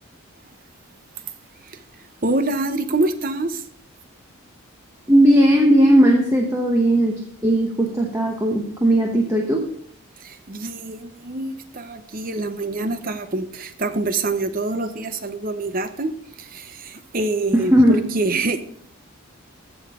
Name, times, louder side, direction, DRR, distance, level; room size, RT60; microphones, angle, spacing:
voice 1, 2.2-3.7 10.2-16.1 16.4-18.6, right 2 dB, 40° right, 10 dB, 0.7 m, -26 dB
voice 2, 5.1-9.7 17.5-18.0, right 1 dB, 15° right, 0 dB, 0.9 m, -17 dB
15.0 x 5.9 x 3.6 m, 0.62 s
head